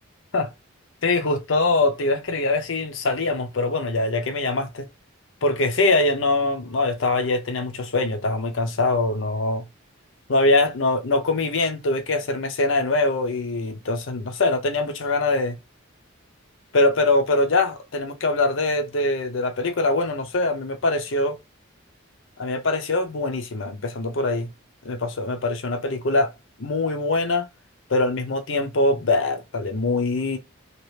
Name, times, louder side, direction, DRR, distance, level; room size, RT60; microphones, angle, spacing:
voice 1, 1.0-4.9 5.4-9.6 10.3-15.6 16.7-21.4 22.4-24.5 24.8-26.3 26.6-27.4 27.9-30.4, left 2 dB, 65° left, 0.7 m, -23 dB
2.9 x 2.5 x 3.2 m
head